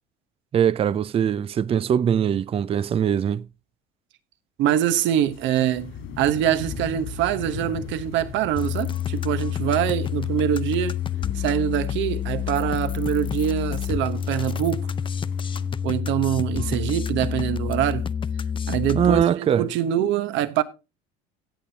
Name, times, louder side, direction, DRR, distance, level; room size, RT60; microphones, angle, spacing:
voice 1, 0.5-3.5 19.0-19.7, right 8 dB, 30° right, 0.4 m, -21 dB
voice 2, 4.6-11.0 11.4-14.9 15.8-18.1 18.7-20.6, right 11 dB, 65° right, 1.1 m, -24 dB
sound 1, 5.2-15.7, left 6 dB, 75° left, 3.5 m, -41 dB
sound 2, 8.6-19.2, left 8 dB, 25° left, 0.5 m, -28 dB
17.0 x 6.9 x 2.8 m
supercardioid pair, 95°, 21 cm